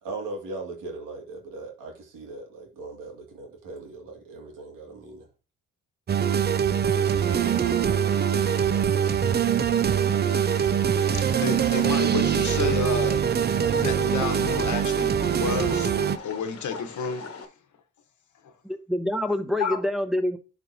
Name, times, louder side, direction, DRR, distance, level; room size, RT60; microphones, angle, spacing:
voice 1, 0.0-5.3, right 3 dB, 85° right, 2.2 m, -39 dB
sound 1, 6.1-16.2, right 8 dB, 30° right, 0.4 m, -23 dB
sound 2, 6.7-17.5, left 5 dB, 45° left, 1.3 m, -43 dB
voice 2, 11.0-13.2 13.7-15.9 16.2-17.5 18.4-18.5 19.6-19.8, left 6 dB, 65° left, 1.2 m, -31 dB
voice 3, 18.6-20.4, left 1 dB, ahead, 1.1 m, -26 dB
11.0 x 4.2 x 2.7 m
cardioid pair, 75°, 32 cm